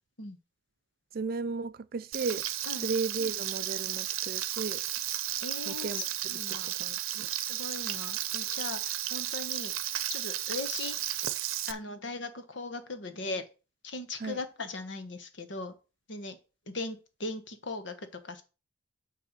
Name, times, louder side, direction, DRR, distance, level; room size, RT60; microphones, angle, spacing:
voice 1, 1.1-2.4 2.8-4.8 5.7-6.0 6.3-6.4 6.8-7.3 14.2-14.4, right 4 dB, 45° right, 0.4 m, -34 dB
Frying (food), 2.1-11.7, right 13 dB, 90° right, 0.7 m, -34 dB
voice 2, 5.4-6.7 7.3-9.7 10.1-11.2 11.7-13.4 13.8-15.7 16.1-16.4 16.7-18.4, left 3 dB, 60° left, 1.2 m, -39 dB
8.9 x 3.3 x 6.6 m
head